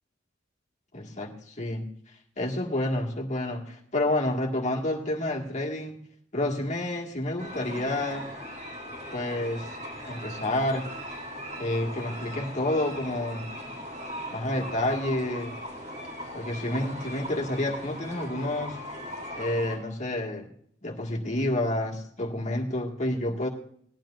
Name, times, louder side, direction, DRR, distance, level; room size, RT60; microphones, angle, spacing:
voice 1, 0.9-1.9 2.4-6.0 6.3-8.3 9.1-9.7 10.1-10.9 11.6-13.5 14.3-15.6 16.3-18.8 19.3-20.5 20.8-23.5, left 1 dB, 40° left, -1 dB, 1.8 m, -29 dB
sound 1, 7.4-19.8, equal, 45° right, 5.0 m, -39 dB
19.5 x 12.0 x 2.5 m, 0.64 s
head